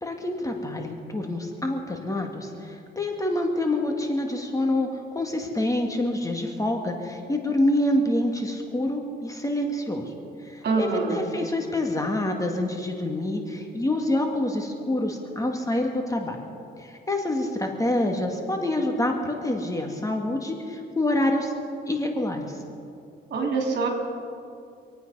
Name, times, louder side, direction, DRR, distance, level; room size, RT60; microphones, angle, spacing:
voice 1, 0.0-10.1 10.4-16.4 16.8-21.5 21.9-22.6, left 1 dB, 15° left, 2 dB, 2.0 m, -27 dB
voice 2, 10.6-11.2 23.3-23.9, right 4 dB, 55° right, 1 dB, 4.0 m, -24 dB
26.0 x 9.2 x 5.5 m, 2.5 s
cardioid pair, 90°, 20 cm